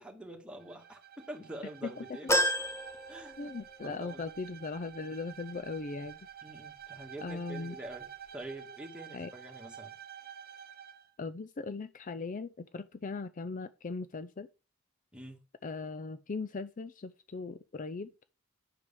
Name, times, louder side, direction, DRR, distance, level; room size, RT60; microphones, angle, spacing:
voice 1, 0.0-2.4 3.1-3.5 3.8-4.2 6.4-8.1 8.3-9.9 15.1-15.4, right 1 dB, 5° right, 2.1 m, -46 dB
Bowed string instrument, 0.6-11.1, right 9 dB, 50° right, 1.0 m, -50 dB
sound 1, 2.3-3.9 4.4-4.5 5.7-5.8, equal, 15° left, 1.2 m, -31 dB
voice 2, 3.4-6.2 7.2-7.8 9.1-9.3 11.2-14.5 15.6-18.1, left 4 dB, 40° left, 0.5 m, -39 dB
11.0 x 4.7 x 7.1 m
head